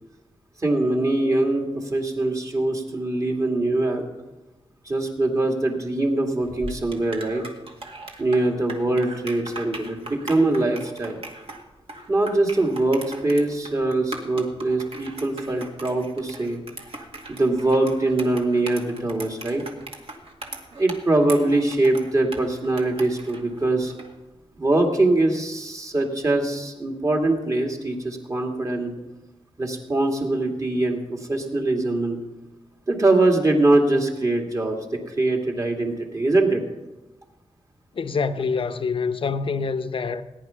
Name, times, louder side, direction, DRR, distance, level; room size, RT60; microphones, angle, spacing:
voice 1, 0.6-4.0 4.9-7.4 8.2-11.2 12.1-16.6 17.3-19.6 20.7-23.9 24.6-28.9 29.6-32.2 32.9-34.8 35.1-36.6, right 2 dB, 30° right, 2.3 m, -22 dB
sound 1, 6.4-24.1, right 2 dB, 60° right, 2.1 m, -39 dB
voice 2, 37.9-40.2, left 5 dB, 55° left, 0.8 m, -26 dB
19.0 x 10.5 x 5.8 m
wide cardioid pair, 165°, 11 cm